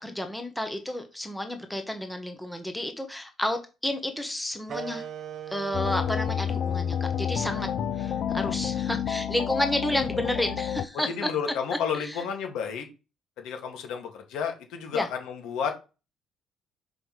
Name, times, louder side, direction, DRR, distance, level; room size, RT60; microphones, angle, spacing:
voice 1, 0.0-5.1 5.5-7.7 8.0-11.3 12.0-12.2 14.9-15.1, left 1 dB, 5° left, 0.8 m, -31 dB
sound 1, 4.7-9.8, right 7 dB, 35° right, 0.8 m, -42 dB
sound 2, 5.7-10.8, left 9 dB, 45° left, 0.4 m, -29 dB
voice 2, 11.1-12.9 13.4-15.8, left 7 dB, 75° left, 1.9 m, -31 dB
6.1 x 5.0 x 4.7 m
cardioid pair, 175°, 0 cm